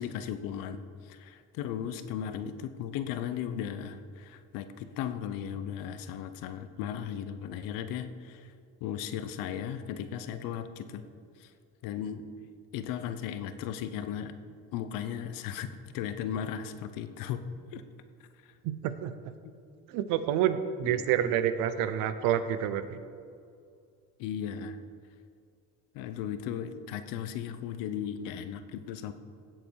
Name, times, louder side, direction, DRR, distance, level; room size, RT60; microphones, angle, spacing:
voice 1, 0.0-8.5 8.8-11.0 11.4-11.5 11.8-12.3 12.7-14.3 14.7-15.7 15.9-17.4 17.7-17.8 18.4-18.5 19.4-19.5 20.8-21.3 24.2-24.8 25.9-29.1, left 9 dB, 85° left, 10 dB, 0.9 m, -36 dB
voice 2, 18.6-19.1 19.9-23.0, right 10 dB, 90° right, 12 dB, 0.8 m, -28 dB
16.5 x 7.9 x 4.8 m, 2.4 s
cardioid pair, 125°, 33 cm